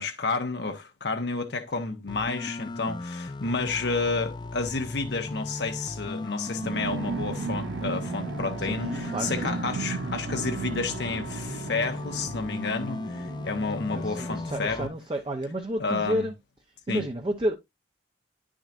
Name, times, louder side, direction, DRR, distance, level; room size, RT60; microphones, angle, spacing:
voice 1, 0.0-14.9 15.8-16.3 16.9-17.0, left 4 dB, 70° left, 0.9 m, -30 dB
sound 1, 2.1-14.9, left 2 dB, 25° left, 0.3 m, -37 dB
sound 2, 6.6-14.7, right 5 dB, 80° right, 0.4 m, -36 dB
voice 2, 8.6-9.7 13.9-16.3 16.9-17.6, right 1 dB, 25° right, 0.7 m, -31 dB
9.9 x 6.3 x 2.5 m
head